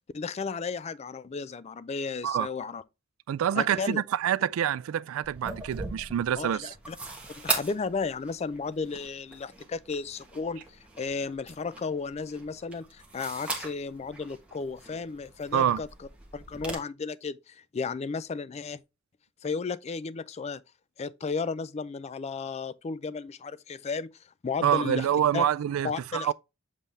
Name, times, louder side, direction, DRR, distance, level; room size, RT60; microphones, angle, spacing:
voice 1, 0.1-2.8 3.5-4.0 6.4-7.0 7.4-15.9 16.3-18.8 19.4-20.6 21.0-24.1 24.4-25.1 25.3-25.4 25.8-26.3, left 4 dB, 30° left, 0.3 m, -34 dB
voice 2, 3.3-6.7 15.5-15.8 24.6-26.3, right 9 dB, 75° right, 0.3 m, -26 dB
sound 1, 5.2-16.7, right 2 dB, 5° right, 1.3 m, -39 dB
7.4 x 3.4 x 4.0 m
head